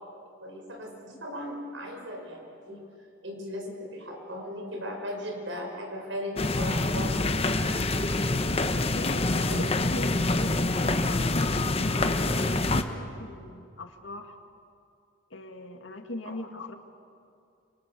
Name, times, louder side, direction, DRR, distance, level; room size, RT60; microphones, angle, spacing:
voice 1, 0.4-2.8 3.2-7.2 9.0-9.7, left 1 dB, 75° right, 2 dB, 5.8 m, -37 dB
sound 1, 6.4-12.8, left 2 dB, 30° left, 1.1 m, -26 dB
voice 2, 8.8-14.4 15.3-16.8, left 2 dB, 80° left, 5 dB, 2.2 m, -41 dB
28.5 x 26.5 x 7.0 m, 2.5 s
head